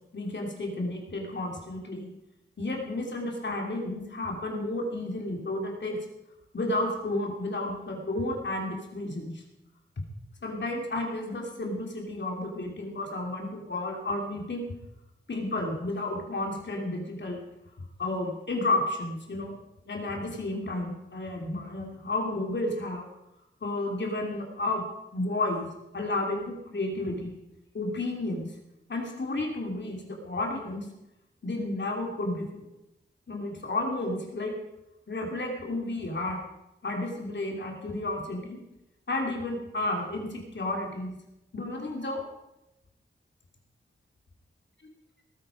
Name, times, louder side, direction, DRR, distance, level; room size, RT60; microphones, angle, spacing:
voice 1, 0.1-2.1 2.6-6.0 6.5-9.4 10.4-14.7 15.3-17.4 18.0-19.6 19.9-23.0 23.6-24.8 25.1-25.7 25.9-27.3 27.7-28.5 28.9-30.9 31.4-32.6 33.3-34.5 35.1-36.4 36.8-38.6 39.1-41.1 41.5-42.2, left 2 dB, 60° left, 1 dB, 3.0 m, -32 dB
19.0 x 8.7 x 5.2 m, 0.91 s
wide cardioid pair, 70°, 21 cm